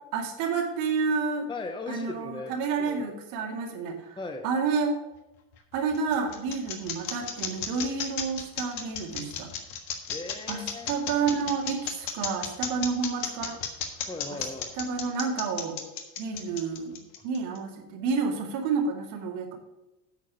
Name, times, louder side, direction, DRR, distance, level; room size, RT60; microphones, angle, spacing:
voice 1, 0.1-1.5 1.9-4.2 4.4-5.0 5.7-9.5 10.5-13.6 14.3-14.4 14.8-15.8 16.2-17.0 17.2-19.6, right 5 dB, 85° right, 2 dB, 2.1 m, -29 dB
voice 2, 1.5-3.0 4.2-4.5 10.1-10.9 14.1-14.7, left 3 dB, 10° left, 5 dB, 0.7 m, -38 dB
sound 1, 5.5-17.6, left 8 dB, 80° left, 1.6 m, -34 dB
8.9 x 5.2 x 6.9 m, 0.98 s
supercardioid pair, 110°, 46 cm